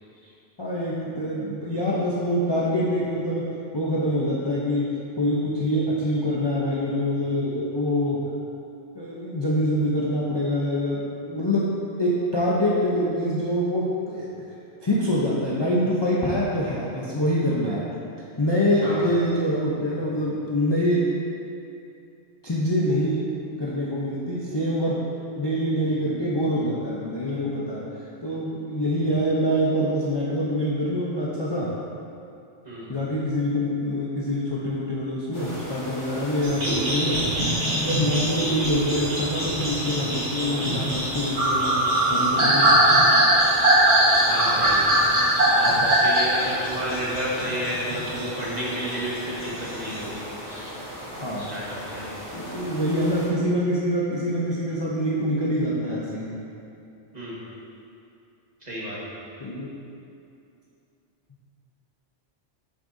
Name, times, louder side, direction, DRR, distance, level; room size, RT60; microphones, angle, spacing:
voice 1, 0.6-8.3 8.9-14.3 14.8-17.8 18.4-21.1 22.4-23.2 23.6-25.0 25.4-31.7 32.9-37.3 37.7-42.8 51.1-51.5 52.3-56.3 59.4-59.7, equal, 25° left, -6 dB, 0.6 m, -25 dB
voice 2, 32.6-33.0 44.3-44.8 45.1-45.2 45.5-50.8 51.4-52.2 57.1-57.4 58.6-59.0, equal, 35° right, -7 dB, 1.6 m, -31 dB
sound 1, 35.3-53.3, equal, 70° left, 2.2 m, -38 dB
sound 2, 36.4-48.3 48.6-50.0, right 1 dB, 65° right, 1.7 m, -21 dB
8.5 x 6.4 x 2.7 m, 2.6 s
omnidirectional pair, 1.2 m